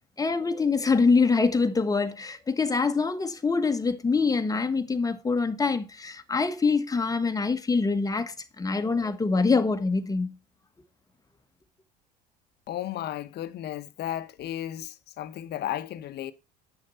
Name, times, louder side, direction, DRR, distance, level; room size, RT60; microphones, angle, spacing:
voice 1, 0.2-10.4, left 4 dB, 15° left, 1.3 m, -25 dB
voice 2, 12.7-16.3, left 12 dB, 50° left, 1.0 m, -34 dB
10.0 x 6.6 x 4.1 m
hypercardioid pair, 75°, 21 cm